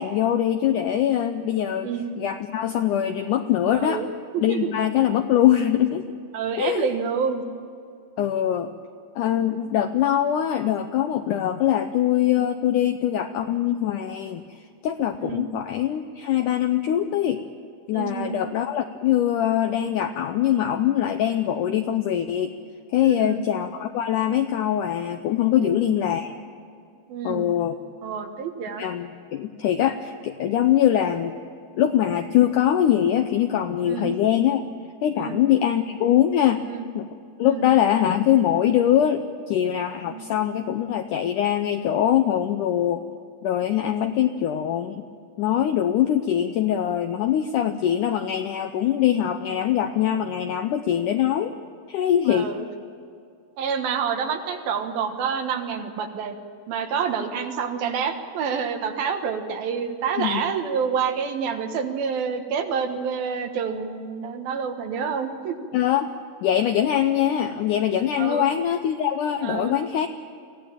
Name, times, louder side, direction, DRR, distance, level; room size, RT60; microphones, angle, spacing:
voice 1, 0.0-1.9 2.2-4.0 4.4-6.1 6.6-6.9 8.2-8.7 9.2-17.4 17.9-22.5 22.9-26.3 27.2-27.8 28.8-31.4 31.8-34.6 35.0-36.6 36.9-37.1 37.4-43.0 43.4-45.1 45.4-51.5 51.9-52.5 60.2-60.5 65.7-66.1 66.4-70.1, left 11 dB, 80° left, 8 dB, 1.8 m, -23 dB
voice 2, 3.8-4.1 4.3-4.7 6.3-7.4 15.2-15.5 17.9-18.4 23.0-23.5 25.5-25.8 27.1-27.5 28.0-28.8 33.9-34.2 35.2-35.4 36.6-36.9 37.4-37.6 40.0-40.2 52.3-52.7 53.6-56.4 56.7-65.6 68.2-68.5 69.4-69.8, right 6 dB, 70° right, 6 dB, 3.2 m, -28 dB
24.0 x 16.5 x 9.0 m, 2.4 s
omnidirectional pair, 4.5 m